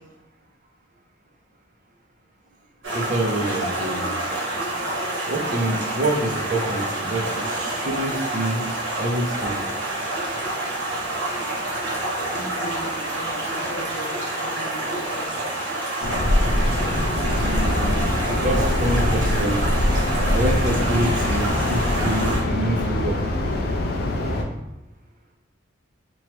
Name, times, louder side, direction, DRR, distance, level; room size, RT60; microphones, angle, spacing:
Stream, 2.8-22.4, right 1 dB, 75° right, 0.9 m, -28 dB
voice 1, 2.9-4.1 5.3-8.7 9.0-9.6 17.4-18.0 18.4-19.7 20.3-23.2, right 1 dB, 40° right, 1 dB, 0.4 m, -26 dB
voice 2, 12.2-15.3, equal, 80° left, -1 dB, 0.7 m, -37 dB
sound 1, 16.0-24.4, left 1 dB, 55° left, 0.4 m, -23 dB
2.9 x 2.2 x 3.0 m, 0.97 s
head